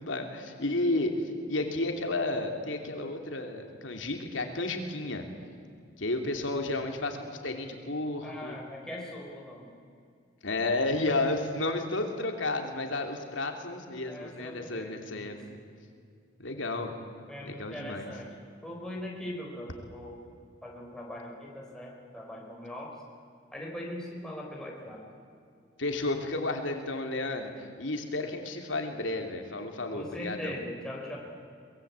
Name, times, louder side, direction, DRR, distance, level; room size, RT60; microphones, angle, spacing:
voice 1, 0.0-5.3 6.0-8.6 10.4-15.4 16.4-16.9 17.4-18.1 25.8-30.6, left 2 dB, 80° left, 4 dB, 3.0 m, -32 dB
voice 2, 8.2-9.7 14.0-15.4 17.3-18.3 18.6-20.2 20.6-22.9 23.5-25.0 29.9-31.2, left 1 dB, 5° left, -3 dB, 4.4 m, -40 dB
23.5 x 21.5 x 8.4 m, 2.3 s
head